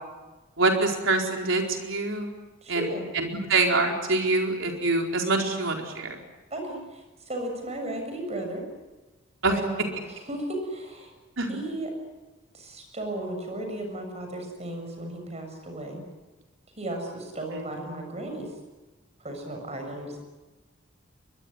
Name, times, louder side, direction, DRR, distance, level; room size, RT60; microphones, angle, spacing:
voice 1, 0.6-2.3 2.7-6.2 9.4-9.6 11.4-11.6 17.5-17.6, right 3 dB, 70° right, 2 dB, 4.5 m, -25 dB
voice 2, 2.6-3.1 6.5-8.6 9.5-11.1 11.5-11.9 12.5-16.0 16.8-18.5 19.2-20.2, right 1 dB, 35° right, 4 dB, 7.2 m, -35 dB
22.5 x 22.5 x 9.8 m, 1.2 s
head